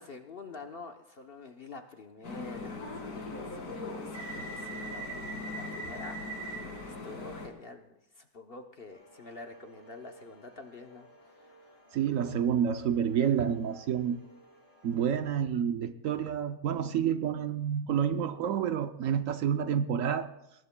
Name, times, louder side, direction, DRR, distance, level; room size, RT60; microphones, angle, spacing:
voice 1, 0.0-11.8, left 3 dB, 45° left, 5 dB, 0.8 m, -48 dB
sound 1, 2.2-7.5, left 1 dB, 90° left, 2.6 m, -39 dB
sound 2, 8.9-15.2, right 2 dB, 30° left, 3.9 m, -57 dB
voice 2, 11.9-14.2 14.8-20.3, right 8 dB, 65° right, 9 dB, 0.9 m, -29 dB
22.5 x 19.0 x 2.2 m, 0.89 s
omnidirectional pair, 1.6 m